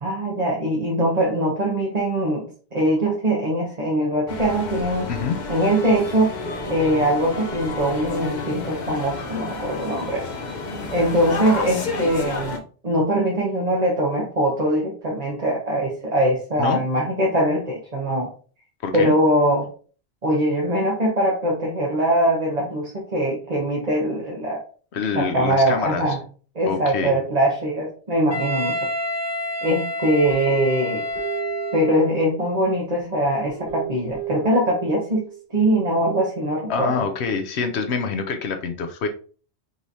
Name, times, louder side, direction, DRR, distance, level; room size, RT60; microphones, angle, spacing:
voice 1, 0.0-5.1 5.5-6.3 6.7-10.3 10.9-18.3 18.9-19.7 20.2-24.6 25.1-26.2 26.5-28.8 29.6-31.0 31.7-37.0, right 1 dB, 40° right, -3 dB, 1.1 m, -22 dB
sound 1, 4.3-12.6, left 3 dB, 45° left, 0.8 m, -31 dB
voice 2, 5.1-5.4 16.6-16.8 18.8-19.1 24.9-26.2 26.7-27.1 36.7-39.1, left 5 dB, 75° left, 6 dB, 0.9 m, -26 dB
Wind instrument woodwind instrument, 28.3-32.1, left 1 dB, 20° left, 1.4 m, -28 dB
Guitar, 30.3-32.7 33.4-35.4, right 8 dB, 75° right, 2.8 m, -34 dB
5.3 x 3.1 x 2.7 m, 0.40 s
omnidirectional pair, 1.1 m